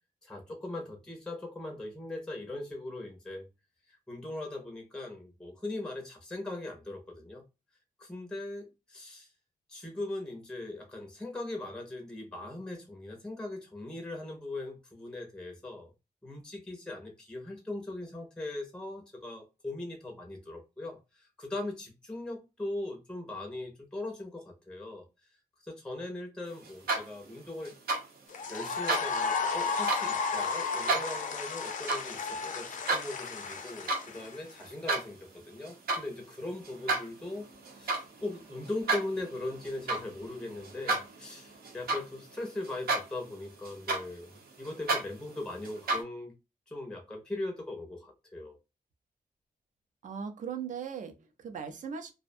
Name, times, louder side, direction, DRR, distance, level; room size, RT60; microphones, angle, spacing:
voice 1, 0.2-3.5 3.9-7.4 8.0-9.3 9.7-15.9 16.2-25.0 25.6-28.0 28.5-44.3 44.6-46.3 46.7-48.6, left 2 dB, 5° left, 2 dB, 0.5 m, -40 dB
sound 1, 26.6-27.3 27.6-28.0 28.6-29.1 29.6-30.0 30.6-31.1 31.6-32.0 32.4-33.1 33.5-34.1 34.4-35.1 35.6-36.0 36.6-42.4 42.6-43.3 43.6-46.0, right 3 dB, 90° right, 0.8 m, -32 dB
sound 2, 28.3-34.6, left 5 dB, 60° left, 0.4 m, -33 dB
voice 2, 50.0-52.1, right 7 dB, 55° right, 6 dB, 0.5 m, -39 dB
2.5 x 2.1 x 2.5 m, 0.26 s
wide cardioid pair, 180°, 15 cm